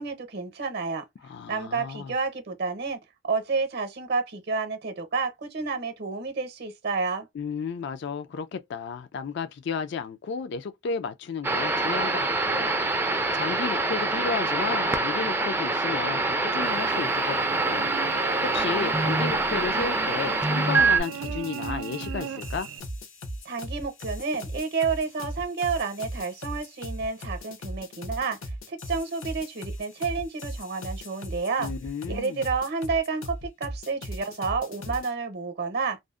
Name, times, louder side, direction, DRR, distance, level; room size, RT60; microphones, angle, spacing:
voice 1, 0.0-1.0 1.5-3.0 3.2-7.3 23.4-28.4 28.7-31.7 32.1-36.0, right 4 dB, 55° right, 0.7 m, -30 dB
voice 2, 1.2-2.1 7.3-22.7 31.6-32.4, left 5 dB, 60° left, 0.4 m, -33 dB
sound 1, 11.4-21.0, right 3 dB, 10° right, 0.3 m, -25 dB
Cricket / Buzz, 16.6-22.8, right 8 dB, 85° right, 0.3 m, -38 dB
sound 2, 21.0-35.1, equal, 85° left, 0.7 m, -37 dB
2.6 x 2.0 x 2.3 m
head